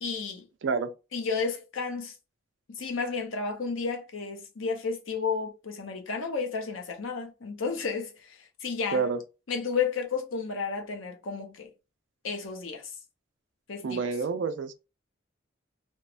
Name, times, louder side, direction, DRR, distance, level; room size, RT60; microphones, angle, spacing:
voice 1, 0.0-0.4 1.1-2.1 2.7-9.0 9.5-11.7 12.2-12.9 13.7-14.1, left 5 dB, 85° left, 0.7 m, -32 dB
voice 2, 0.6-0.9 8.9-9.2 13.8-14.8, right 5 dB, 65° right, 0.4 m, -28 dB
3.0 x 2.1 x 2.4 m
head